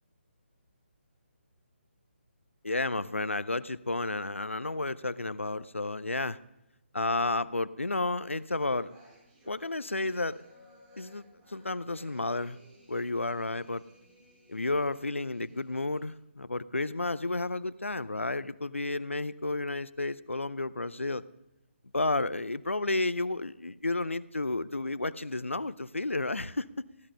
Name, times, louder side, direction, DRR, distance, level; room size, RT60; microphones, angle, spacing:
voice 1, 2.6-6.4 6.9-8.9 9.5-10.4 11.0-11.2 11.5-12.6 12.9-13.8 14.5-21.2 21.9-26.8, left 2 dB, 90° left, 17 dB, 0.6 m, -32 dB
sound 1, 8.4-16.2, equal, 15° right, 3.6 m, -59 dB
15.5 x 11.0 x 5.4 m, 0.92 s
figure-of-eight pair, 145°, 7 cm